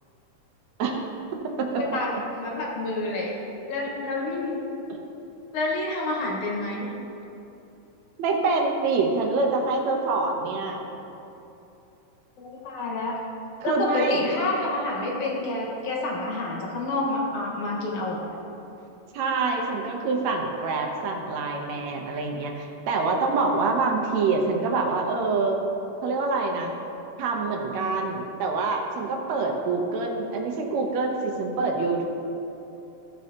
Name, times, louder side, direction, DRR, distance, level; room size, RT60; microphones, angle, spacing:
voice 1, 1.7-3.3 3.7-4.6 5.5-6.9 12.4-13.2 13.6-18.3, left 2 dB, 65° left, -3 dB, 2.8 m, -28 dB
voice 2, 8.2-10.8 13.6-14.2 19.1-25.6 26.0-26.7 27.2-32.1, right 3 dB, 70° right, 1 dB, 1.9 m, -26 dB
16.0 x 7.6 x 2.9 m, 2.9 s
omnidirectional pair, 3.7 m